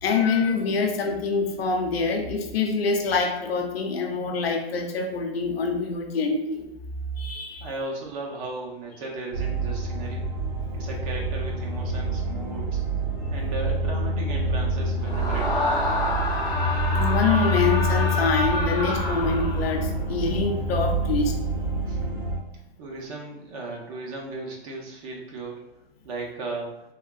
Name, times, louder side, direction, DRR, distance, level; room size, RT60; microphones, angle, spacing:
voice 1, 0.0-6.7 7.2-7.7 16.9-21.7, left 4 dB, 65° left, 3 dB, 0.7 m, -25 dB
voice 2, 7.6-10.3 10.7-12.8 13.3-15.9 21.8-22.2 22.8-25.6 26.0-26.7, right 3 dB, 35° right, -1 dB, 0.8 m, -36 dB
sound 1, 9.3-22.4, right 1 dB, 65° right, 1.2 m, -27 dB
Screaming, 15.0-19.9, left 2 dB, 10° left, 0.5 m, -28 dB
3.5 x 2.5 x 2.4 m, 0.88 s
hypercardioid pair, 130°, 32 cm